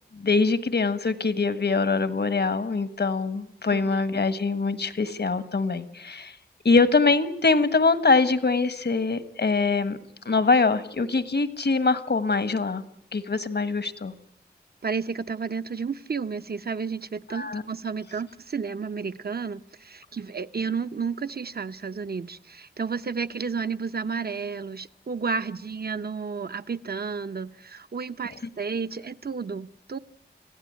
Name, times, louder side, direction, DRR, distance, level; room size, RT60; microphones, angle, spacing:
voice 1, 0.1-6.4 6.6-10.0 10.2-12.8 13.1-14.1 17.3-17.6, left 4 dB, 75° left, 1.5 m, -23 dB
voice 2, 14.8-30.0, right 5 dB, 65° right, 0.9 m, -32 dB
29.0 x 16.0 x 9.5 m
wide cardioid pair, 70°, 17 cm